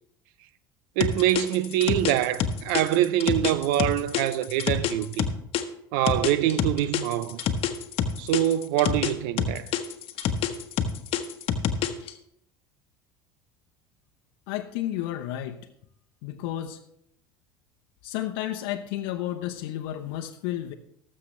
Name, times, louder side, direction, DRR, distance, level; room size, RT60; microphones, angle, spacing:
sound 1, 1.0-5.6 6.1-9.1 9.4-12.1, left 8 dB, 55° left, 1.2 m, -26 dB
voice 1, 1.0-5.3 5.9-7.4 8.2-9.7, right 13 dB, 70° right, 0.6 m, -24 dB
voice 2, 14.5-15.6 16.2-16.8 18.0-20.7, left 13 dB, 70° left, 0.8 m, -32 dB
18.5 x 7.6 x 3.2 m
hypercardioid pair, 85°, 12 cm